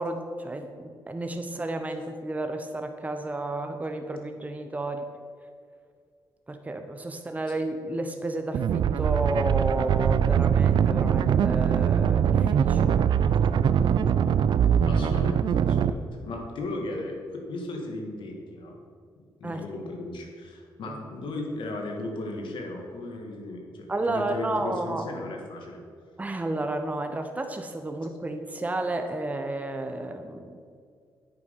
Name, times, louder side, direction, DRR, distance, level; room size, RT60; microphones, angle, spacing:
voice 1, 0.0-5.1 6.5-13.0 19.4-19.6 20.9-21.0 23.9-25.1 26.2-30.6, right 2 dB, 20° right, 6 dB, 0.8 m, -32 dB
sound 1, 8.5-15.9, right 8 dB, 65° right, 0.4 m, -22 dB
voice 2, 14.8-18.8 19.2-25.8, left 2 dB, 75° left, 1 dB, 1.7 m, -36 dB
8.7 x 7.0 x 5.2 m, 2.1 s
cardioid pair, 75°, 8 cm